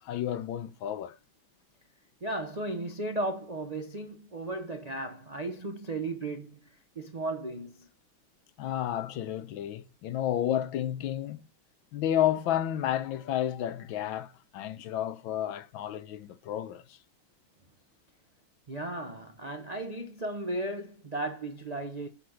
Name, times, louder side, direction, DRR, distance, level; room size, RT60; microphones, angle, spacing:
voice 1, 0.0-1.2 8.6-11.4 11.9-17.0, left 11 dB, 85° left, 1.5 m, -31 dB
voice 2, 2.2-6.6 7.0-7.9 18.7-22.1, right 2 dB, 70° right, 0.3 m, -35 dB
6.7 x 5.0 x 6.4 m
omnidirectional pair, 2.1 m